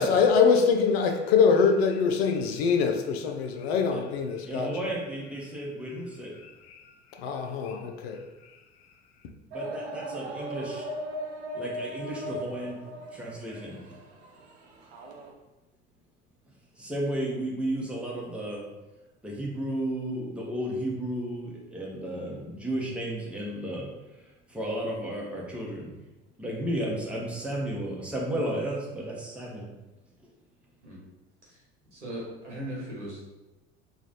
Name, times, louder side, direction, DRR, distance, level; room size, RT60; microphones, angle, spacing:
voice 1, 0.0-4.8 6.4-6.8 7.2-8.2, left 5 dB, 60° left, 0.5 m, -24 dB
voice 2, 4.5-6.3 9.5-10.8 11.5-12.8 13.1-13.8 16.8-18.6 19.2-23.8 24.5-25.9 26.4-29.7, right 1 dB, 5° right, 0.9 m, -33 dB
sound 1, 9.5-15.3, right 1 dB, 70° right, 0.7 m, -38 dB
voice 3, 31.9-33.3, right 1 dB, 90° right, 1.3 m, -38 dB
3.0 x 2.4 x 4.0 m
figure-of-eight pair, 70°, 35 cm